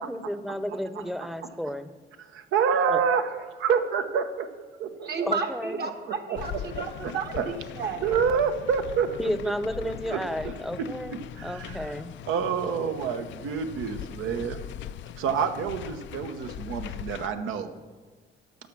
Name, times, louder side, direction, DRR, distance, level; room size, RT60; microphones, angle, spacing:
voice 1, 0.0-1.9 2.9-3.0 5.3-5.8 9.2-12.1, equal, ahead, 12 dB, 0.7 m, -32 dB
voice 2, 2.2-3.3 3.6-4.5 4.8-5.3 6.3-6.6 7.0-7.4 8.0-9.3 9.8-10.5 11.1-11.9 12.3-14.6 15.2-17.7, right 6 dB, 85° right, 8 dB, 1.0 m, -28 dB
voice 3, 5.0-8.2, right 4 dB, 55° right, 5 dB, 1.4 m, -32 dB
sound 1, 6.3-17.3, left 11 dB, 70° left, 0.4 m, -40 dB
11.5 x 7.1 x 6.1 m, 1.5 s
cardioid pair, 90°, 20 cm